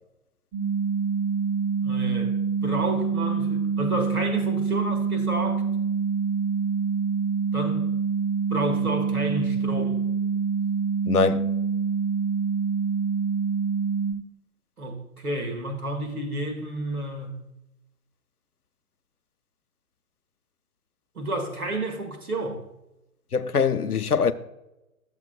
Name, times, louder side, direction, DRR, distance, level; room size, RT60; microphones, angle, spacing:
sound 1, 0.5-14.1, right 5 dB, ahead, 1.3 m, -26 dB
voice 1, 1.8-5.6 7.5-7.9 8.5-10.0 14.8-17.4 21.2-22.6, right 1 dB, 75° right, 1.7 m, -30 dB
voice 2, 11.1-11.5 23.3-24.3, left 5 dB, 85° left, 0.6 m, -22 dB
12.0 x 7.3 x 2.3 m
figure-of-eight pair, 125°, 44 cm